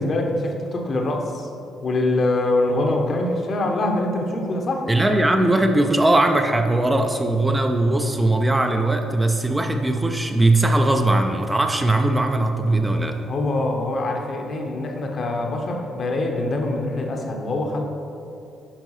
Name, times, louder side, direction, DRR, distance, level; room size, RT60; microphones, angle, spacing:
voice 1, 0.0-1.5 1.8-4.9 13.3-17.8, left 2 dB, 45° left, 2 dB, 1.0 m, -24 dB
voice 2, 4.9-13.2, right 2 dB, 15° right, 4 dB, 0.5 m, -19 dB
10.0 x 5.3 x 3.1 m, 2.6 s
figure-of-eight pair, 45°, 0 cm